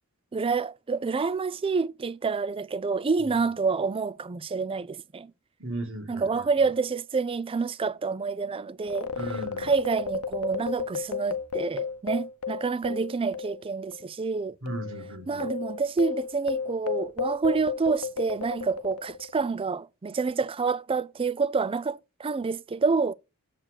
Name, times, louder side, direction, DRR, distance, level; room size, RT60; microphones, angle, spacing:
voice 1, 0.3-5.3 6.1-9.1 9.6-14.6 15.3-23.1, right 4 dB, 25° right, 0.4 m, -28 dB
voice 2, 5.6-6.4 9.1-9.7 14.6-15.5, right 1 dB, 65° right, 2.1 m, -36 dB
sound 1, 8.8-13.7 13.9-14.0 14.7-19.4, left 6 dB, 85° left, 0.8 m, -33 dB
7.5 x 4.6 x 6.4 m
head